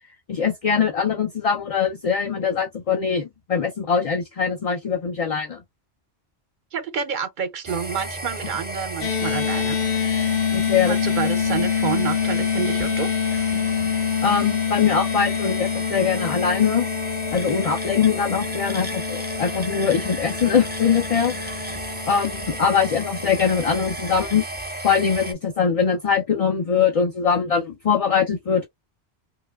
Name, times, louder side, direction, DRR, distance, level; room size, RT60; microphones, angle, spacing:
voice 1, 0.3-5.6 10.5-11.0 14.2-16.9 17.3-21.5 22.1-24.4 24.8-28.7, left 6 dB, 45° left, 0.5 m, -22 dB
voice 2, 6.7-9.9 10.9-13.1, right 7 dB, 60° right, 0.6 m, -28 dB
sound 1, 7.7-25.3, right 1 dB, 10° right, 0.6 m, -33 dB
sound 2, 9.0-23.4, left 8 dB, 80° left, 1.2 m, -26 dB
4.8 x 2.2 x 2.3 m
omnidirectional pair, 1.1 m